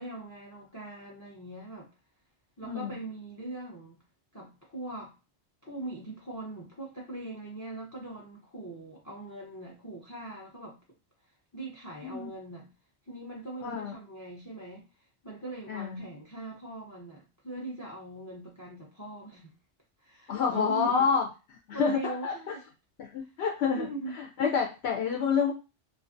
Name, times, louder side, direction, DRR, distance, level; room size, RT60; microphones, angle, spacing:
voice 1, 0.0-1.9 2.6-4.0 4.3-5.1 5.6-10.8 11.5-12.7 13.1-14.9 15.2-19.5 20.0-21.0 21.7-22.6 23.2-23.3 23.6-24.1, right 2 dB, 20° left, -1 dB, 0.5 m, -41 dB
voice 2, 2.6-3.0 12.0-12.3 13.6-13.9 15.7-16.0 20.3-21.3 21.7-22.3 23.0-23.8 24.4-25.5, left 6 dB, 70° left, 0 dB, 0.8 m, -28 dB
2.5 x 2.4 x 2.5 m, 0.29 s
omnidirectional pair, 1.1 m